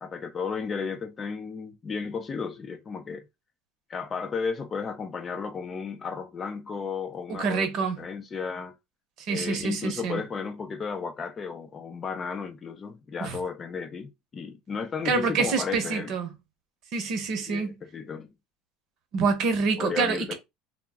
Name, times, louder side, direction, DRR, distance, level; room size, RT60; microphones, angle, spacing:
voice 1, 0.0-3.3 3.9-7.7 8.0-8.7 9.3-16.1 17.3-18.3 19.8-20.3, left 5 dB, 25° left, 0.4 m, -34 dB
voice 2, 7.3-8.0 9.2-10.2 13.2-13.4 15.0-16.3 16.9-17.7 19.1-20.3, right 5 dB, 55° right, 0.8 m, -27 dB
2.2 x 2.1 x 3.5 m
supercardioid pair, 120°, 0 cm